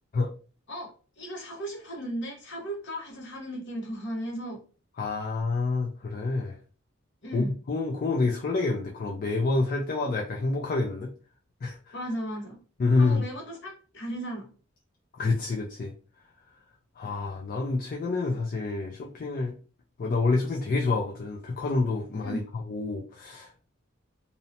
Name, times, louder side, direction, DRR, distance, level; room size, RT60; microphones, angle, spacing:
voice 1, 1.2-4.6 7.2-7.5 11.9-12.6 13.0-14.5 22.2-22.4, equal, 60° left, 0 dB, 0.9 m, -36 dB
voice 2, 5.0-6.6 7.3-11.1 11.6-11.9 12.8-13.2 15.1-15.9 17.0-19.5 20.0-23.7, left 3 dB, 45° left, 0 dB, 0.4 m, -28 dB
2.7 x 2.0 x 2.6 m, 0.37 s
head